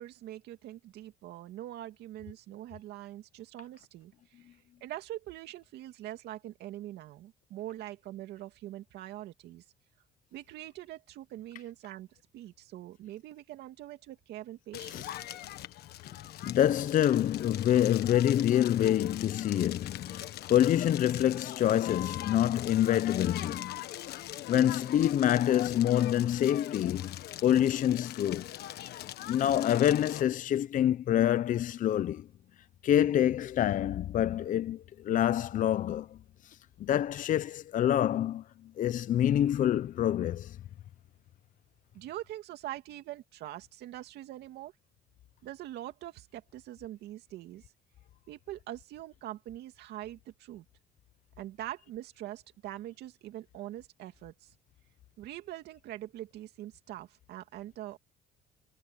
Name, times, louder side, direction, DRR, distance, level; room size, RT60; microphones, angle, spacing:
voice 1, 0.0-4.6 4.8-9.6 10.3-15.2 41.9-44.7 45.4-47.7 48.3-50.6 51.4-54.5 55.2-58.0, right 14 dB, 80° right, 2.5 m, -43 dB
Crackle, 14.7-30.2, left 13 dB, 70° left, 1.4 m, -42 dB
voice 2, 16.4-23.8 24.5-28.5 29.3-32.3 32.8-36.2 36.8-38.4 38.8-40.6, left 11 dB, 50° left, 0.7 m, -26 dB
cardioid pair, 110°, 17 cm